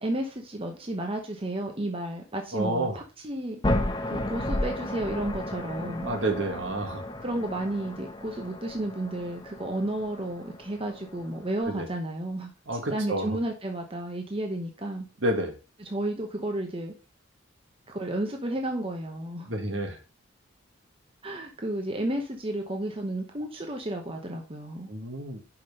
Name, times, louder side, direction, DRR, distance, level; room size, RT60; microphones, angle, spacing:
voice 1, 0.0-3.6 4.1-6.1 7.2-15.1 15.8-16.9 17.9-19.5 21.2-24.9, right 1 dB, 30° right, 3 dB, 1.0 m, -32 dB
voice 2, 2.5-3.0 6.0-7.0 11.7-11.9 12.7-13.4 15.2-15.5 19.5-20.0 24.9-25.4, right 1 dB, 65° right, 4 dB, 1.7 m, -29 dB
sound 1, 3.6-11.6, left 1 dB, 20° left, 0.9 m, -33 dB
5.9 x 5.2 x 5.3 m, 0.32 s
head